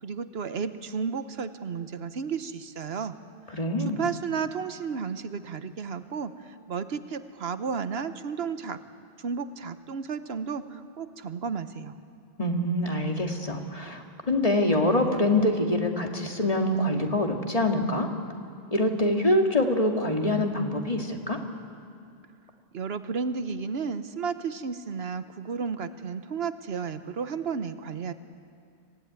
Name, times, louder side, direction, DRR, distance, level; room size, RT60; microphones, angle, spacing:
voice 1, 0.0-3.2 3.8-8.8 9.2-11.9 22.7-28.1, right 5 dB, 75° right, 11 dB, 1.2 m, -33 dB
voice 2, 3.5-4.0 12.4-18.1 18.7-21.4, left 1 dB, 35° left, 2 dB, 2.1 m, -25 dB
26.0 x 17.0 x 9.4 m, 2.4 s
omnidirectional pair, 1.0 m